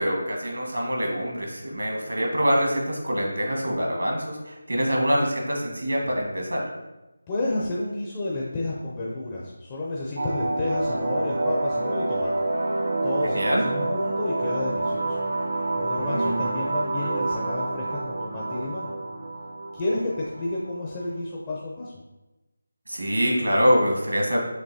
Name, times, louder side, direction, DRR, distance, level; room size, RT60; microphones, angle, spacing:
voice 1, 0.0-6.7 13.2-13.6 16.0-16.5 22.9-24.4, equal, 80° right, 0 dB, 1.3 m, -25 dB
voice 2, 7.3-12.3 13.0-15.2 15.8-18.9 19.7-21.9, left 2 dB, 20° left, -5 dB, 0.5 m, -30 dB
sound 1, 10.2-21.2, right 2 dB, 55° right, 0.5 m, -28 dB
6.1 x 2.9 x 2.7 m, 1.0 s
figure-of-eight pair, 165°, 0 cm